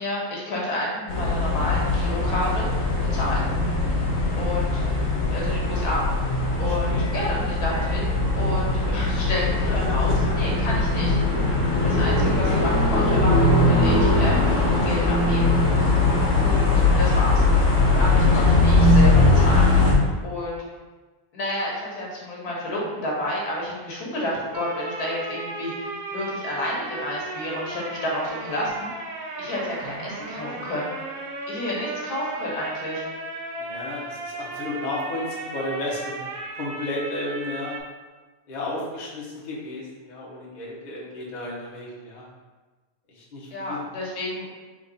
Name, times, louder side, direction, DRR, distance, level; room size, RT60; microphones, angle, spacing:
voice 1, 0.0-2.9 3.1-3.4 4.3-4.8 5.3-8.0 8.3-11.2 11.8-15.5 16.4-17.4 18.0-20.6 21.3-28.9 29.4-30.9 31.5-33.0 43.5-44.5, left 1 dB, 80° left, -4 dB, 1.6 m, -30 dB
sound 1, 1.1-19.9, left 2 dB, 60° left, 1.2 m, -20 dB
voice 2, 6.6-7.1 9.7-10.2 11.6-12.0 12.2-12.5 16.4-16.7 33.6-36.2 36.5-37.8 38.5-42.2 43.1-43.8, left 2 dB, 35° left, -5 dB, 0.9 m, -33 dB
sound 2, 24.5-37.8, right 2 dB, 65° right, 0.5 m, -35 dB
3.6 x 3.5 x 3.9 m, 1.3 s
omnidirectional pair, 1.6 m